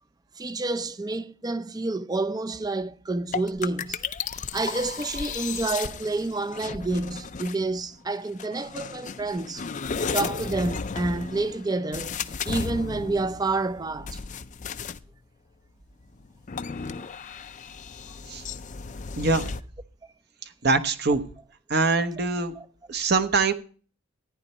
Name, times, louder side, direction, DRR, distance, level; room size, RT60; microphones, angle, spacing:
voice 1, 0.4-4.0 4.3-9.7 10.1-12.2 12.4-14.2 22.6-22.7, right 3 dB, 20° right, 0.5 m, -29 dB
sound 1, 3.3-7.8 8.4-15.1 16.1-19.6, left 5 dB, 35° left, 0.5 m, -34 dB
voice 2, 19.1-19.5 20.6-21.2 21.7-22.5 22.9-23.5, right 3 dB, 50° right, 1.0 m, -23 dB
14.5 x 9.9 x 4.3 m
head